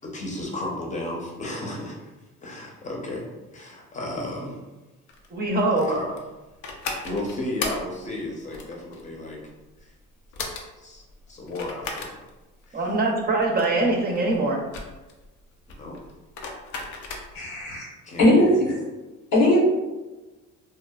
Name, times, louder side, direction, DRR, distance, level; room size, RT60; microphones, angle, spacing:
voice 1, 0.0-2.0 2.4-3.2 3.5-4.6 5.9-6.1 7.0-9.4 9.8-9.9 10.8-12.2 12.7-12.8 15.8-16.0 18.0-18.6, left 1 dB, 20° left, -1 dB, 0.7 m, -33 dB
sound 1, 5.1-17.6, left 3 dB, 65° left, 0.6 m, -36 dB
voice 2, 5.3-5.9 12.7-14.6, right 2 dB, 30° right, -1 dB, 0.6 m, -23 dB
voice 3, 17.3-17.8 18.2-18.8 19.3-19.6, left 1 dB, 85° left, -5 dB, 1.2 m, -18 dB
2.8 x 2.3 x 2.3 m, 1.1 s
supercardioid pair, 85°, 32 cm